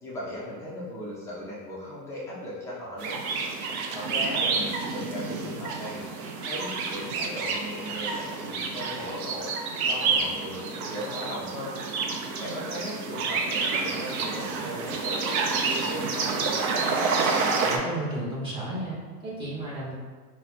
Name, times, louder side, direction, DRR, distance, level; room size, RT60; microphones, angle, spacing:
voice 1, 0.0-3.2 3.9-6.0 6.4-9.5 9.9-11.8 12.4-16.3, left 1 dB, 5° left, -9 dB, 0.3 m, -37 dB
sound 1, 3.0-17.8, right 4 dB, 60° right, 0.6 m, -29 dB
voice 2, 17.6-20.0, right 1 dB, 10° right, -8 dB, 1.0 m, -33 dB
3.9 x 2.2 x 2.8 m, 1.5 s
supercardioid pair, 120°, 50 cm